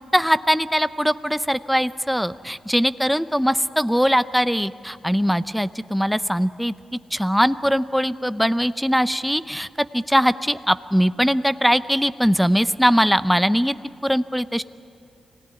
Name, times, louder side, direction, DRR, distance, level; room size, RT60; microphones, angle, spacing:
voice 1, 0.1-13.8 14.0-14.6, equal, ahead, 14 dB, 0.6 m, -21 dB
25.5 x 18.0 x 9.8 m, 2.5 s
cardioid pair, 100°, 0 cm